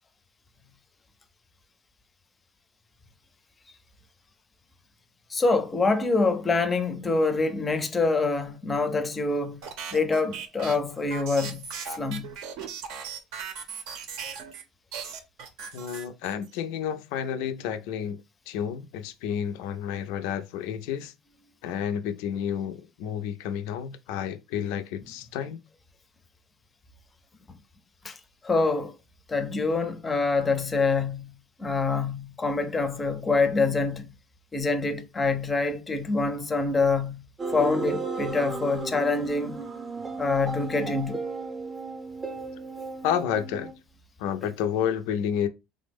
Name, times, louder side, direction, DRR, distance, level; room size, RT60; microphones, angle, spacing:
voice 1, 5.3-9.6 9.9-12.3 28.0-28.2 28.4-28.9 29.3-31.3 31.6-34.1 34.5-37.2 37.5-39.6 40.2-41.2, left 3 dB, 20° left, 0.5 m, -25 dB
sound 1, 9.6-14.6 14.9-16.6, right 6 dB, 70° right, 0.6 m, -38 dB
voice 2, 15.7-18.2 18.5-21.1 21.6-25.6 43.0-43.7 44.2-45.5, left 8 dB, 80° left, 0.3 m, -30 dB
sound 2, 37.4-43.7, right 3 dB, 25° right, 0.6 m, -34 dB
3.3 x 2.0 x 3.4 m
cardioid pair, 120°, 0 cm